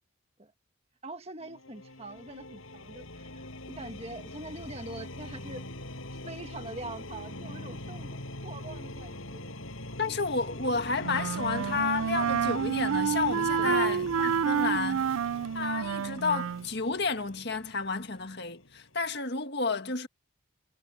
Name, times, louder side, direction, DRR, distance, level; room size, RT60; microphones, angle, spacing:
voice 1, 1.0-5.6 6.1-9.5 10.1-10.2 13.6-14.0 14.5-14.7, right 2 dB, 30° right, 1.6 m, -44 dB
sound 1, 1.4-19.2, left 1 dB, 80° left, 7.7 m, -43 dB
voice 2, 10.0-15.1 15.5-20.1, left 4 dB, 55° left, 1.8 m, -31 dB
Wind instrument woodwind instrument, 11.0-16.7, right 7 dB, 85° right, 0.4 m, -29 dB
head